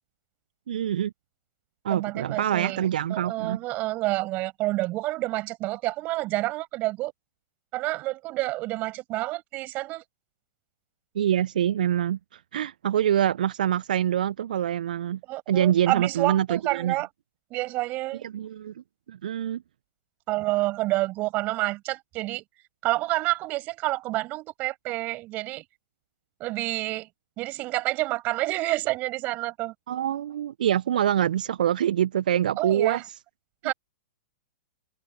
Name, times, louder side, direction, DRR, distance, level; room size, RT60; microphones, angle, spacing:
voice 1, 0.7-1.1 1.8-3.6 11.1-15.2 15.5-16.9 18.2-18.7 19.1-19.6 29.9-33.0 33.6-33.7, right 10 dB, 60° right, 1.0 m, -25 dB
voice 2, 1.9-2.8 3.1-7.1 7.7-10.0 15.3-17.1 17.5-18.3 20.3-22.4 22.8-25.6 26.4-27.1 27.4-29.7 32.6-33.0 33.6-33.7, right 19 dB, 35° right, 6.4 m, -28 dB
figure-of-eight pair, 105°, 5 cm